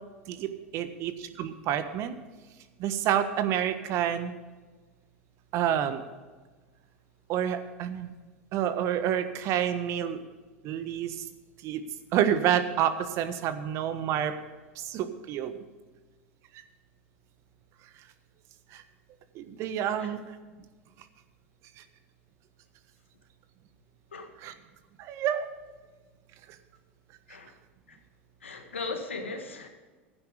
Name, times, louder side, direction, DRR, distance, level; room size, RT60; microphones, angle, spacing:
voice 1, 0.3-2.1 2.8-4.3 5.5-6.0 7.3-8.1 8.5-10.2 10.6-11.1 11.6-11.8 12.1-14.3 14.8-15.5 19.3-20.2 24.4-24.5 25.0-25.5, right 10 dB, 50° right, 10 dB, 1.3 m, -28 dB
voice 2, 28.4-29.7, left 3 dB, 85° left, 5 dB, 1.7 m, -37 dB
12.0 x 9.7 x 5.0 m, 1.3 s
hypercardioid pair, 85°, 6 cm